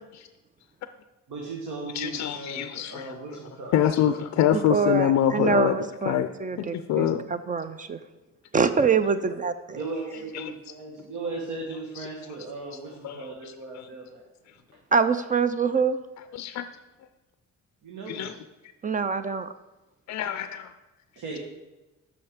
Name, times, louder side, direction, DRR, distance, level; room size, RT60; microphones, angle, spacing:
voice 1, 1.3-4.1 9.7-14.2 14.7-14.8 17.8-18.3 21.2-21.4, right 3 dB, 80° right, -1 dB, 1.2 m, -37 dB
voice 2, 1.9-3.2 3.7-6.3 6.6-7.2 8.6-8.9 10.3-10.5 11.7-12.1 13.0-13.5 16.4-16.6 18.1-18.4 20.1-20.7, left 10 dB, 65° left, 10 dB, 0.4 m, -26 dB
voice 3, 4.5-8.0 8.5-9.8 14.9-16.0 18.8-19.5, right 5 dB, 25° right, 11 dB, 0.4 m, -25 dB
6.3 x 5.6 x 5.0 m, 1.1 s
cardioid pair, 90°, 30 cm